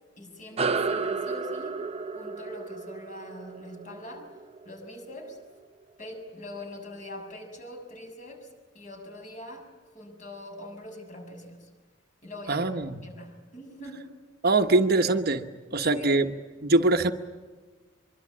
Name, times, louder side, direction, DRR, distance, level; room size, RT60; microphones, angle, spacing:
voice 1, 0.2-1.8 2.1-4.3 4.7-5.4 6.0-11.7 12.2-12.7 13.0-14.1 15.9-16.2, left 1 dB, 40° left, 4 dB, 6.9 m, -43 dB
sound 1, 0.6-5.4, right 4 dB, 30° right, 0.8 m, -32 dB
voice 2, 12.5-12.9 14.4-15.5 15.7-16.3 16.6-17.1, right 2 dB, 50° right, 6 dB, 1.2 m, -22 dB
25.0 x 23.5 x 8.7 m, 1.4 s
head